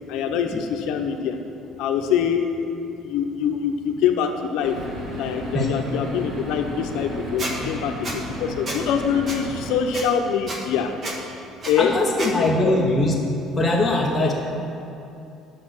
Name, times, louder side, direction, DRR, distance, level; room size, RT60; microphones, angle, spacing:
voice 1, 0.1-1.4 1.8-2.5 3.0-4.8 5.2-10.9 11.6-11.9 12.3-12.7, left 7 dB, 75° left, 4 dB, 0.6 m, -24 dB
sound 1, 4.6-9.8, equal, 55° right, 1.9 m, -33 dB
Squeak, 7.4-7.5 8.0-8.2 8.7-8.8 9.3-9.4 9.9-10.0 10.5-10.6 11.0-11.2 11.6-11.7 12.2-12.3, right 2 dB, 30° right, 1.1 m, -30 dB
voice 2, 11.8-13.1 13.6-14.3, left 1 dB, 5° left, -4 dB, 0.8 m, -21 dB
8.5 x 6.4 x 6.1 m, 2.8 s
cardioid pair, 160°, 0 cm